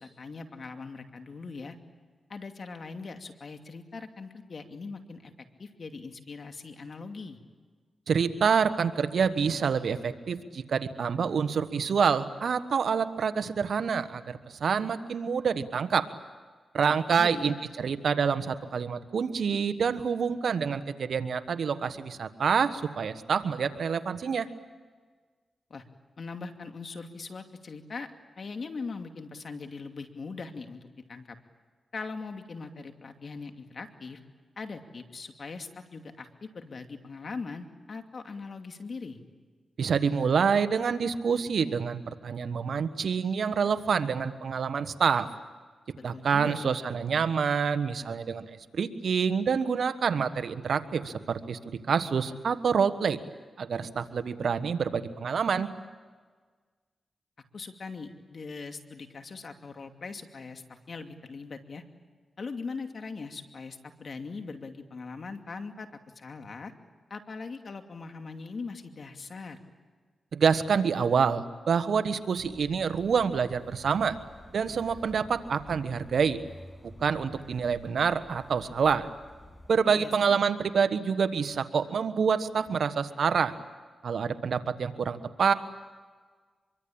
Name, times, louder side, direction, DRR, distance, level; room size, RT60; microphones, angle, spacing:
voice 1, 0.0-1.8 2.3-5.3 5.6-7.4 16.8-17.5 25.7-25.8 26.2-28.1 28.4-31.4 31.9-34.2 34.6-39.2 46.1-46.8 57.5-61.8 62.4-65.9 66.2-66.7 67.1-69.6 79.9-80.1, left 4 dB, 60° left, 6 dB, 2.6 m, -40 dB
voice 2, 8.1-16.1 16.7-24.5 39.8-45.3 46.0-53.2 53.6-55.7 70.3-74.2 74.5-76.4 77.0-79.1 79.7-83.5 84.0-85.5, right 6 dB, 75° right, 11 dB, 1.4 m, -27 dB
sound 1, 72.4-79.7, left 1 dB, 20° left, 6.6 m, -51 dB
25.0 x 23.5 x 8.8 m, 1.5 s
cardioid pair, 50°, 0 cm